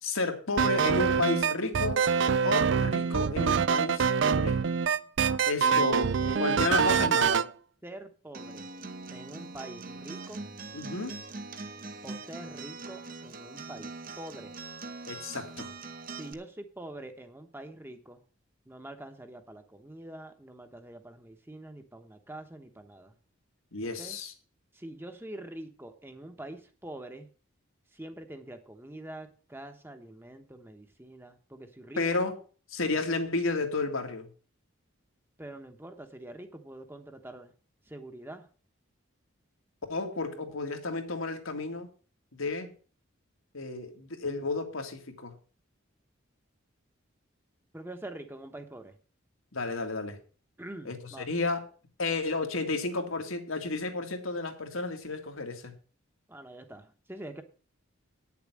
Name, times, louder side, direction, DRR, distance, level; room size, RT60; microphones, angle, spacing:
voice 1, 0.0-2.1 2.4-4.6 5.5-6.1 6.4-7.4 10.7-11.1 15.1-15.7 23.7-24.3 32.0-32.3 32.7-34.3 39.9-41.9 42.3-42.7 43.5-45.3 49.5-50.2 50.8-51.6 52.0-55.7, left 3 dB, 85° left, 4 dB, 2.2 m, -32 dB
sound 1, 0.6-7.5, right 6 dB, 60° right, 0.4 m, -25 dB
voice 2, 6.2-7.1 7.8-8.7 9.1-10.4 12.0-14.5 16.1-18.2 18.7-23.1 24.0-24.2 24.7-27.3 27.9-32.0 35.4-37.5 37.9-38.5 40.3-40.4 47.7-49.0 50.6-51.3 56.3-57.4, right 1 dB, 10° right, 7 dB, 1.0 m, -45 dB
Acoustic guitar, 8.3-16.3, right 3 dB, 45° right, 1.0 m, -42 dB
9.6 x 7.1 x 7.5 m, 0.39 s
head